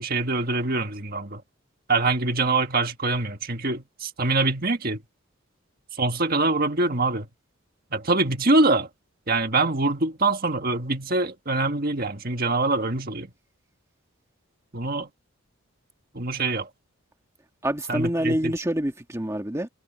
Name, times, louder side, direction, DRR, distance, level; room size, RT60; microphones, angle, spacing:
voice 1, 0.0-1.4 1.9-5.0 6.0-7.3 7.9-8.9 9.3-13.3 14.7-15.1 16.1-16.7 17.9-18.5, right 3 dB, 45° right, 1.7 m, -24 dB
voice 2, 17.6-19.7, right 1 dB, 15° right, 1.7 m, -26 dB
head